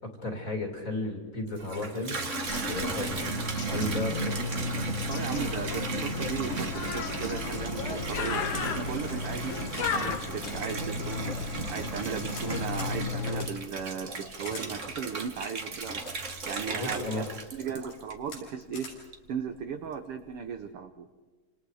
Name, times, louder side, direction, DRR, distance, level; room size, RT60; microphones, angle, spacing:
voice 1, 0.2-2.3 2.7-3.3 3.7-4.4 16.7-17.2, left 2 dB, 25° left, 3 dB, 2.6 m, -34 dB
Water tap faucet / Bathtub (filling or washing), 1.5-18.4 18.9-19.5, right 4 dB, 40° right, 1.1 m, -36 dB
Bird, 2.5-13.5, left 5 dB, 65° left, 3.2 m, -34 dB
voice 2, 5.1-8.5 8.7-11.4 11.7-16.0 16.5-17.3 17.5-18.9 19.3-21.1, right 7 dB, 65° right, 7 dB, 1.4 m, -36 dB
sound 1, 12.0-12.5 12.7-12.9 13.4-13.5 14.4-14.7 15.4-16.1 16.9-17.3 17.8-18.0 18.3-18.4 18.7-19.0, left 3 dB, 80° left, 7.4 m, -44 dB
28.5 x 27.0 x 4.9 m, 1.4 s
omnidirectional pair, 3.8 m